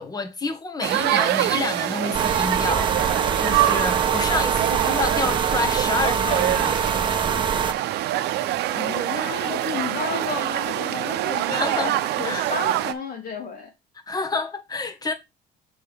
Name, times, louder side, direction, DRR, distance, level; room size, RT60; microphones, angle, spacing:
voice 1, 0.0-6.9 11.5-11.9 12.2-12.5 14.1-15.1, left 3 dB, 20° left, 1.5 m, -28 dB
sound 1, 0.8-12.9, right 13 dB, 75° right, 0.7 m, -25 dB
sound 2, 2.1-7.7, right 6 dB, 30° right, 0.7 m, -24 dB
voice 2, 8.6-13.7, left 5 dB, 60° left, 3.0 m, -33 dB
6.7 x 5.4 x 3.5 m
cardioid pair, 110°, 17 cm